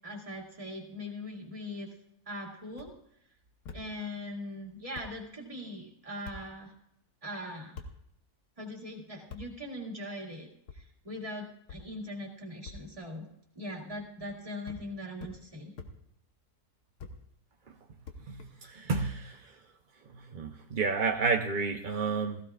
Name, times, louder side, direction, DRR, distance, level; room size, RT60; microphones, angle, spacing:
voice 1, 0.0-2.0 2.3-2.9 3.7-6.7 7.2-7.8 8.6-10.5 10.7-13.3 13.6-15.7, left 1 dB, 20° right, 0 dB, 2.1 m, -41 dB
sound 1, 2.7-2.9 3.6-3.8 4.6-4.7 4.9-5.1 6.2-6.4 7.7-7.9 9.3-9.4 10.7-10.8 11.7-11.8 12.6-12.8 13.9-14.3 14.6-14.8 15.2-15.4 15.8-15.9 17.0-17.2 18.0-18.7, left 4 dB, 75° left, 1.6 m, -44 dB
voice 2, 18.3-19.5 20.1-22.4, right 4 dB, 50° right, 3 dB, 0.6 m, -31 dB
16.0 x 15.5 x 2.4 m, 0.76 s
omnidirectional pair, 1.7 m